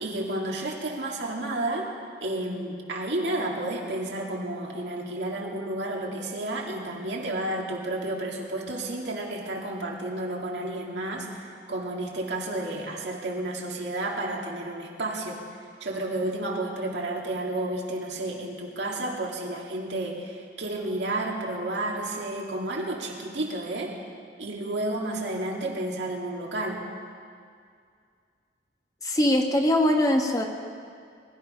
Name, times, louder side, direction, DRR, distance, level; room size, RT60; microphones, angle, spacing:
voice 1, 0.0-1.9 2.2-15.4 15.8-23.9 24.4-26.8, right 1 dB, 75° right, -1 dB, 2.3 m, -31 dB
voice 2, 29.0-30.5, left 1 dB, 20° left, 2 dB, 1.2 m, -22 dB
21.0 x 12.5 x 5.5 m, 2.2 s
head